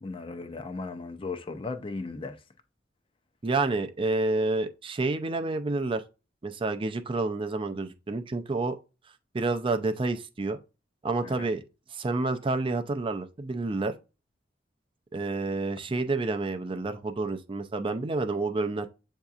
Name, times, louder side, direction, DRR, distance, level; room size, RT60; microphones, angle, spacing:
voice 1, 0.0-2.4 11.2-11.5, left 3 dB, 30° left, 0.5 m, -36 dB
voice 2, 3.4-6.0 6.4-8.7 9.3-10.6 11.0-11.6 11.9-13.9 15.1-18.9, right 3 dB, 30° right, 0.4 m, -29 dB
7.8 x 2.7 x 2.4 m
head